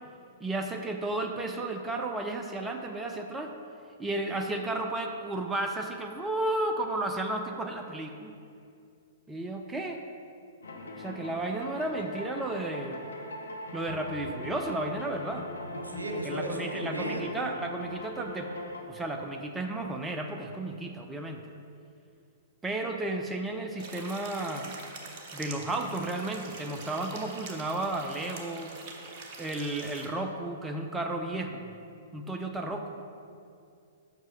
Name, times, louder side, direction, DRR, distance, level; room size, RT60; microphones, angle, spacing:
voice 1, 0.4-3.5 4.0-8.3 9.3-10.0 11.0-13.1 13.7-15.5 16.2-18.5 18.9-21.4 22.6-24.8 25.3-28.7 29.4-31.7 32.1-33.0, right 2 dB, 10° right, 3 dB, 0.5 m, -33 dB
sound 1, 10.6-18.8, left 1 dB, 70° left, 0.7 m, -41 dB
voice 2, 15.6-17.3, right 1 dB, 80° right, 2 dB, 0.9 m, -35 dB
sound 2, 23.8-30.1, right 3 dB, 40° right, 0.9 m, -44 dB
5.8 x 5.3 x 5.4 m, 2.4 s
figure-of-eight pair, 110°, 0 cm